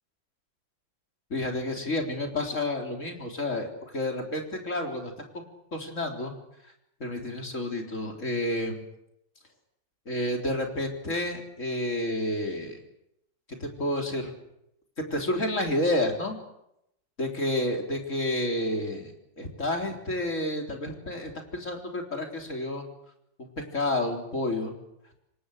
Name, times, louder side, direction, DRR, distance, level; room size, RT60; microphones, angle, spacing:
voice 1, 1.3-3.7 3.9-5.4 5.7-6.3 7.0-8.9 10.1-12.8 13.6-14.3 15.1-16.4 17.2-22.9 23.4-24.7, left 1 dB, 40° left, 2 dB, 4.2 m, -30 dB
27.5 x 24.5 x 6.6 m, 0.80 s
omnidirectional pair, 2.1 m